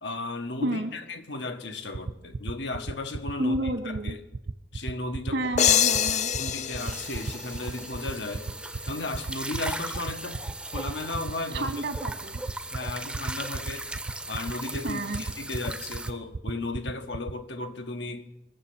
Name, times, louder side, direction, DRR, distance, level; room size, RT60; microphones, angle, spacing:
voice 1, 0.0-3.7 4.0-4.2 4.7-5.5 6.4-8.5 8.9-10.4 10.7-11.9 12.7-13.9 14.3-15.0 15.4-18.3, left 2 dB, 75° left, 1.5 m, -35 dB
sound 1, 1.9-17.3, right 3 dB, 50° right, 0.5 m, -33 dB
voice 2, 3.4-4.2 5.3-6.3 11.5-12.4 14.8-15.2, right 1 dB, 75° right, 2.2 m, -30 dB
sound 2, 5.6-8.2, left 9 dB, 40° left, 0.5 m, -25 dB
sound 3, 6.8-16.1, right 2 dB, 5° right, 0.8 m, -38 dB
22.0 x 7.7 x 7.2 m
head